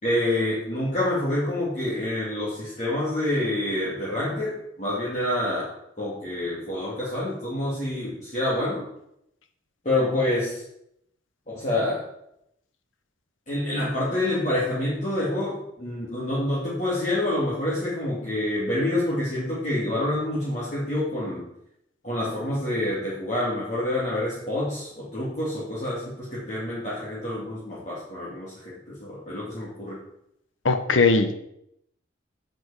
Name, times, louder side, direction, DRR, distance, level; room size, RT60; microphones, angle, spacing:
voice 1, 0.0-8.8 9.8-10.6 11.5-12.0 13.5-21.5 22.0-30.0, left 1 dB, 40° left, -8 dB, 2.4 m, -27 dB
voice 2, 30.6-31.3, left 3 dB, 85° left, 9 dB, 1.0 m, -19 dB
8.2 x 7.9 x 4.9 m, 0.77 s
head